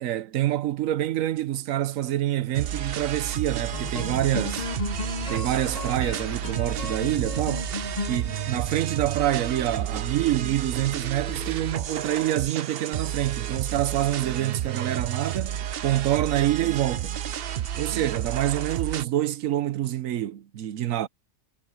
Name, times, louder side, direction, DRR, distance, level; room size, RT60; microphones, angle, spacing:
voice 1, 0.0-4.7 5.3-7.7 8.1-17.2 17.8-21.1, right 13 dB, 70° right, 1.1 m, -26 dB
sound 1, 2.5-19.0, right 10 dB, 55° right, 0.7 m, -31 dB
sound 2, 2.8-12.3, left 4 dB, 40° left, 0.6 m, -37 dB
omnidirectional pair, 1.5 m